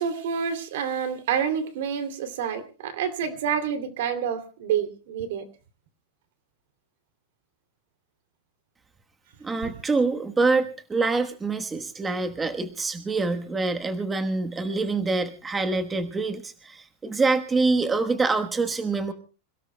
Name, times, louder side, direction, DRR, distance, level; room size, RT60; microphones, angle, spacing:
voice 1, 0.0-5.5, right 7 dB, 70° right, 11 dB, 2.7 m, -28 dB
voice 2, 9.4-19.1, right 3 dB, 10° right, 7 dB, 1.2 m, -25 dB
27.0 x 17.5 x 2.2 m, 0.36 s
supercardioid pair, 155°, 0 cm